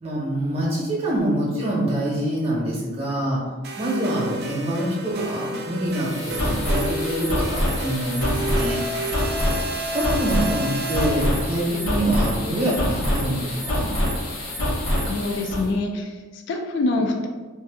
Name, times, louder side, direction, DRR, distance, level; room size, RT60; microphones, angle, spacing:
voice 1, 0.0-3.4 3.8-8.9 9.9-13.9, right 1 dB, 30° right, -5 dB, 0.9 m, -25 dB
sound 1, 3.6-11.7, right 1 dB, 50° right, 0.4 m, -31 dB
sound 2, 5.9-15.6, equal, 85° left, 0.9 m, -26 dB
voice 2, 15.0-17.3, left 2 dB, 60° left, 3 dB, 0.3 m, -25 dB
2.6 x 2.3 x 3.4 m, 1.3 s
head